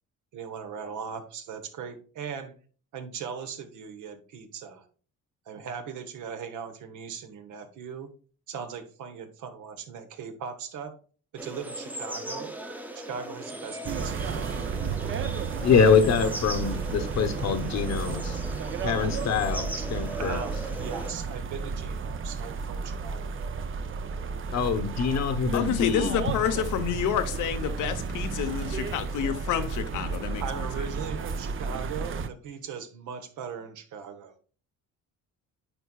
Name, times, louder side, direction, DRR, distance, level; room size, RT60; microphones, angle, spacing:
voice 1, 0.3-2.5 2.9-4.9 5.5-8.1 8.5-10.9 11.3-12.6 12.9-14.3 20.2-23.4 30.4-34.3, right 6 dB, 80° right, 1.1 m, -39 dB
sound 1, 11.4-21.1, right 1 dB, 5° right, 0.8 m, -38 dB
sound 2, 13.8-32.3, right 5 dB, 45° right, 0.6 m, -33 dB
voice 2, 15.6-18.4 18.8-20.4 24.5-26.3, left 6 dB, 60° left, 1.0 m, -25 dB
voice 3, 25.5-30.7, left 9 dB, 85° left, 0.9 m, -29 dB
9.0 x 4.6 x 2.3 m
cardioid pair, 90°, 30 cm